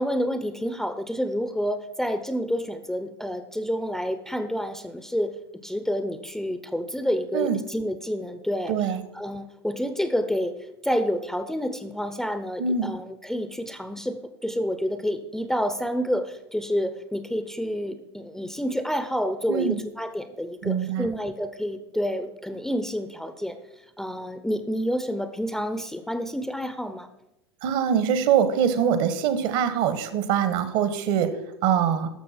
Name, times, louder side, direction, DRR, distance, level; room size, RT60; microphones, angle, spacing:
voice 1, 0.0-5.4 5.6-8.8 9.1-10.6 10.8-23.6 24.0-27.1, equal, 5° left, 10 dB, 0.6 m, -29 dB
voice 2, 8.7-9.0 12.6-12.9 19.5-19.8 20.6-21.1 27.6-31.3 31.6-32.1, right 8 dB, 55° right, 11 dB, 1.2 m, -23 dB
12.5 x 6.6 x 4.3 m, 0.88 s
hypercardioid pair, 90°, 14 cm